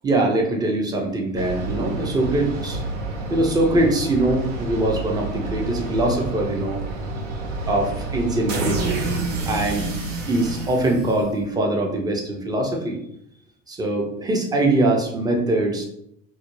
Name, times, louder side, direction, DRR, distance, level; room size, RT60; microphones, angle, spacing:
voice 1, 0.0-2.8 3.3-6.8 7.7-9.0 9.5-9.9 10.3-13.0 13.7-15.8, right 1 dB, 10° right, 1 dB, 0.4 m, -22 dB
sound 1, 1.3-11.6, right 3 dB, 75° right, 0.7 m, -29 dB
2.4 x 2.0 x 3.0 m, 0.74 s
hypercardioid pair, 75°, 39 cm